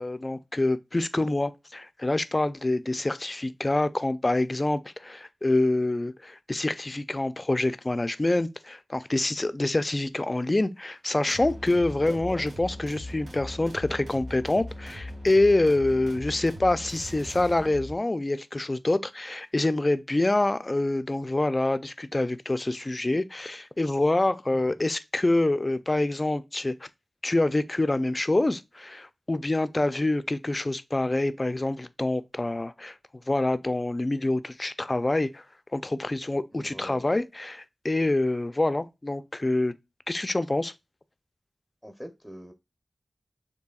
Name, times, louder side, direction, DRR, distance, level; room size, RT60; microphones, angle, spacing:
voice 1, 0.0-26.9 27.2-32.9 33.3-35.4 35.7-39.7 40.1-40.7, left 2 dB, 30° left, 0.4 m, -26 dB
sound 1, 11.3-18.0, left 1 dB, 85° right, 1.5 m, -40 dB
voice 2, 12.1-12.4 36.5-37.1 41.8-42.5, equal, 5° right, 0.8 m, -42 dB
6.8 x 2.7 x 2.3 m
wide cardioid pair, 60°, 0 cm